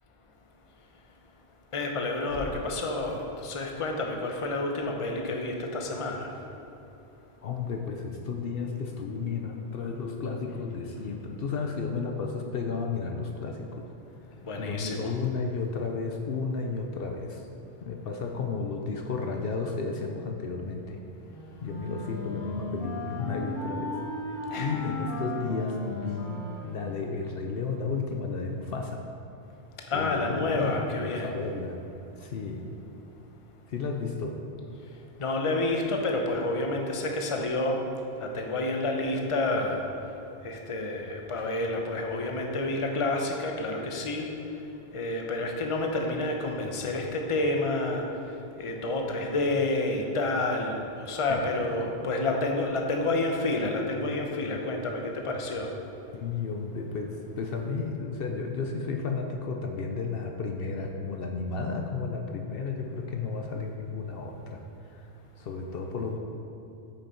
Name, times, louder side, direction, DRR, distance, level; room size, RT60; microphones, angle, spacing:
voice 1, 1.7-6.3 14.4-15.1 24.5-24.8 29.9-31.3 35.2-37.8 38.2-39.8 40.4-44.3 44.9-48.1 48.6-55.7, left 2 dB, 35° left, 2 dB, 0.8 m, -29 dB
voice 2, 7.4-13.9 14.6-17.4 17.8-21.0 21.6-23.9 24.6-29.0 29.9-31.8 32.2-32.6 33.7-34.4 51.3-51.9 56.1-64.6 64.9-65.0 65.4-66.2, left 4 dB, 65° left, 3 dB, 0.8 m, -33 dB
Wind instrument woodwind instrument, 21.3-27.4, left 2 dB, 50° left, 1.7 m, -36 dB
8.5 x 6.4 x 4.4 m, 2.9 s
omnidirectional pair, 1.1 m